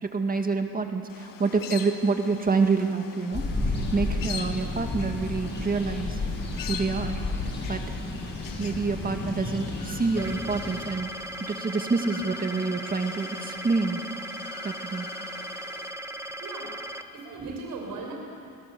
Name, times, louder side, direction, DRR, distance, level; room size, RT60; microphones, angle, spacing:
voice 1, 0.0-6.2 6.7-7.9 8.6-11.1 11.5-14.0 14.6-15.1, right 4 dB, 25° right, 5 dB, 2.0 m, -27 dB
sound 1, 1.1-15.9, left 7 dB, 65° left, 1.7 m, -44 dB
sound 2, 3.3-10.8, left 2 dB, 30° left, 5.8 m, -32 dB
sound 3, 10.2-17.0, right 1 dB, 5° right, 1.2 m, -38 dB
voice 2, 16.4-18.1, right 3 dB, 70° right, -1 dB, 5.6 m, -38 dB
25.0 x 18.5 x 6.9 m, 2.4 s
cardioid pair, 110°, 36 cm